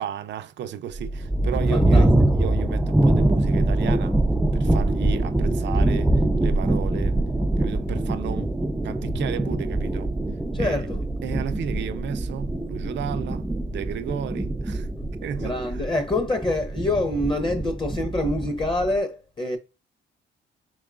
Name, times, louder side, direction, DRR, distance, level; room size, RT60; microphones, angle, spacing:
voice 1, 0.0-4.2 4.5-7.2 7.6-8.5 8.8-10.1 10.6-10.8 11.2-14.9 15.2-15.8, right 9 dB, 65° right, 0.5 m, -33 dB
sound 1, 0.9-19.0, right 1 dB, 5° right, 0.3 m, -24 dB
voice 2, 1.7-2.1 10.5-11.0 15.4-19.6, left 2 dB, 25° left, 0.8 m, -26 dB
4.6 x 3.0 x 2.4 m
cardioid pair, 90°, 20 cm